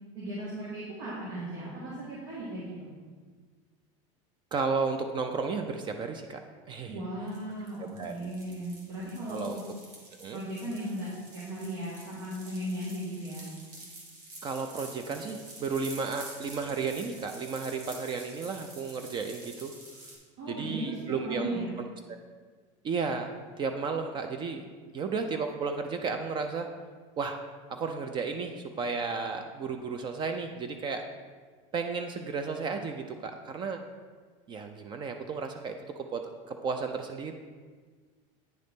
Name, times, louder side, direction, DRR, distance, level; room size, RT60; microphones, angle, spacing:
voice 1, 0.1-2.9 6.9-9.6 10.3-13.5 20.4-21.7, right 1 dB, 75° right, -7 dB, 1.9 m, -37 dB
voice 2, 4.5-6.4 6.7-7.0 7.9-8.3 9.3-9.6 10.2-10.4 14.4-19.7 20.5-21.7 22.8-23.3 23.6-24.7 24.9-26.7 27.2-27.4 27.7-31.0 31.7-33.8 34.5-35.8 36.1-36.2 36.5-37.3, right 5 dB, 30° right, 6 dB, 0.4 m, -33 dB
sound 1, 7.3-20.2, right 2 dB, 50° right, 1.7 m, -48 dB
9.3 x 3.8 x 3.6 m, 1.5 s
supercardioid pair, 135°, 16 cm